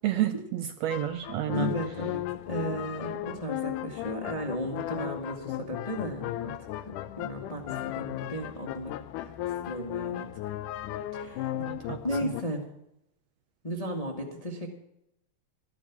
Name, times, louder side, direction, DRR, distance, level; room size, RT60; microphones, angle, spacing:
voice 1, 0.0-1.7 11.6-12.3, right 12 dB, 75° right, 9 dB, 1.7 m, -30 dB
sound 1, 0.9-12.4, left 13 dB, 85° left, 2.2 m, -36 dB
voice 2, 1.5-9.3 9.6-10.3 11.1-11.5 12.0-12.7 13.6-14.7, equal, 20° left, 2 dB, 1.0 m, -35 dB
13.0 x 12.0 x 5.9 m, 0.81 s
omnidirectional pair, 3.6 m